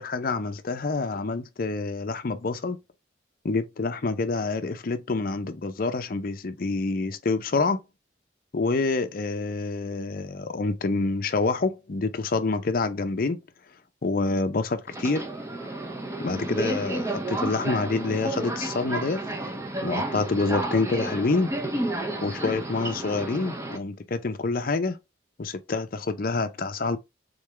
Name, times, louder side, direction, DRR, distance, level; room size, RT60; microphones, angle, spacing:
voice 1, 0.0-2.8 3.4-7.8 8.5-13.4 14.0-15.3 16.2-19.2 19.8-21.5 22.2-25.0 25.4-27.0, left 3 dB, 50° left, 0.5 m, -27 dB
Subway metro underground, 14.9-23.8, right 2 dB, 15° right, 0.7 m, -31 dB
3.8 x 3.5 x 3.2 m
head